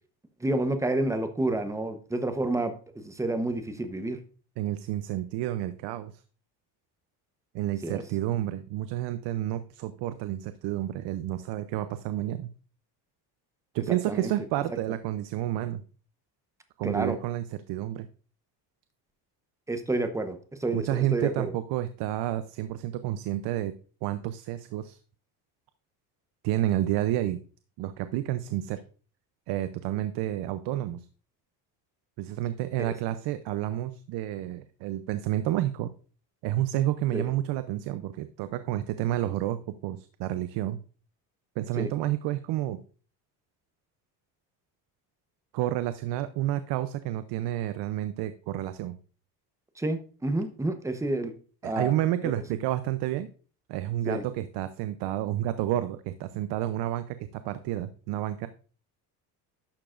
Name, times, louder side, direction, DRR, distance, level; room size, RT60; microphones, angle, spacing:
voice 1, 0.4-4.2 7.8-8.0 14.1-14.3 16.8-17.2 19.7-21.5 32.8-32.9 37.1-37.3 41.8-41.9 49.8-51.3 51.6-51.9 52.2-52.3 54.1-54.2, right 2 dB, 5° right, 8 dB, 0.9 m, -29 dB
voice 2, 4.6-6.2 7.5-12.5 13.7-15.8 16.8-18.1 20.7-23.7 24.0-25.0 26.4-27.4 27.8-28.8 29.5-31.1 32.2-35.9 36.4-40.8 41.6-42.8 45.5-49.0 51.6-53.3 53.7-58.5, right 13 dB, 70° right, 12 dB, 0.6 m, -30 dB
11.5 x 6.8 x 2.5 m, 0.39 s
cardioid pair, 130°, 42 cm